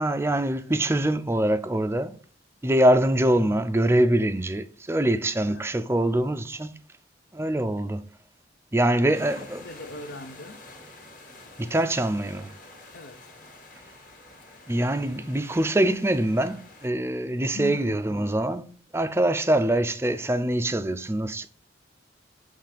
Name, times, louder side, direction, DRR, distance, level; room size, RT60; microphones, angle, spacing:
voice 1, 0.0-2.2 2.6-6.8 7.3-8.1 8.7-9.6 11.6-12.5 14.7-21.5, right 1 dB, 15° right, 0.4 m, -24 dB
voice 2, 9.0-10.6 12.9-13.2 17.5-18.0, left 3 dB, 70° left, 0.7 m, -39 dB
sound 1, 9.1-16.9, left 2 dB, 45° left, 1.5 m, -48 dB
7.4 x 3.2 x 5.0 m
head